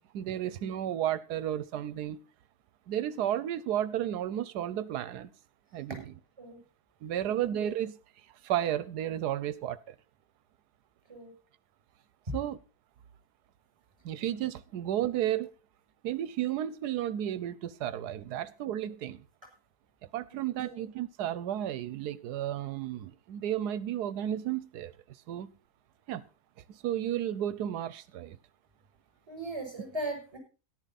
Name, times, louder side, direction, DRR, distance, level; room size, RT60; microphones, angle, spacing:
voice 1, 0.1-2.2 2.9-5.3 5.7-6.1 7.0-7.9 8.4-9.9 12.3-12.6 14.0-15.5 16.0-19.2 20.1-24.9 25.3-25.5 26.1-26.2 26.8-28.4, right 11 dB, 85° right, 1.3 m, -32 dB
voice 2, 29.3-30.4, right 1 dB, 20° right, 7.0 m, -38 dB
13.5 x 11.5 x 4.1 m
omnidirectional pair, 1.7 m